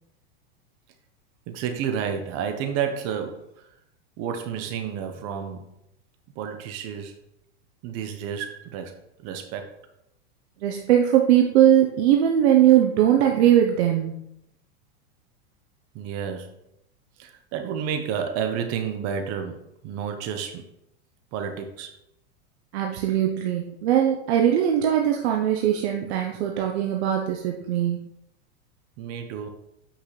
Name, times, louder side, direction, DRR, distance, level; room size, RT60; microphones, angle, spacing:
voice 1, 1.5-3.5 4.2-5.7 6.4-7.1 7.8-8.9 9.2-9.7 15.9-16.5 17.2-20.6 21.3-21.9 29.0-29.5, right 7 dB, 45° right, 6 dB, 1.0 m, -30 dB
voice 2, 10.6-14.2 22.7-28.0, right 10 dB, 70° right, 2 dB, 0.9 m, -20 dB
8.3 x 5.8 x 3.2 m, 0.80 s
supercardioid pair, 125°, 34 cm